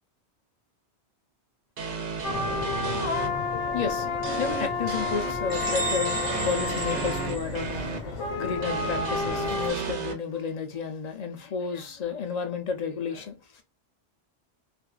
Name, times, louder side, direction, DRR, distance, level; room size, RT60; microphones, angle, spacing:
sound 1, 1.8-3.3 4.2-8.0 8.6-10.1, right 5 dB, 85° right, 1.0 m, -33 dB
sound 2, 2.2-9.7, left 4 dB, 85° left, 1.0 m, -30 dB
voice 1, 3.7-4.1 4.4-7.8 8.4-13.6, left 6 dB, 50° left, 0.5 m, -32 dB
sound 3, 5.5-8.1, right 3 dB, 45° right, 0.8 m, -34 dB
2.5 x 2.3 x 2.3 m
omnidirectional pair, 1.2 m